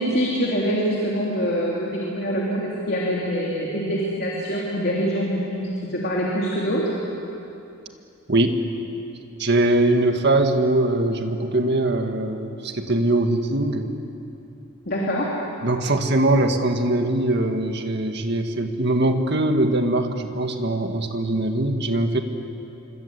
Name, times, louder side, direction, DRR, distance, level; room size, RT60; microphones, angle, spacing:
voice 1, 0.0-6.8 14.8-15.3, equal, 50° left, -4 dB, 3.3 m, -24 dB
voice 2, 9.4-13.9 15.6-22.2, right 2 dB, 50° right, 5 dB, 1.9 m, -21 dB
25.5 x 25.5 x 8.4 m, 2.8 s
head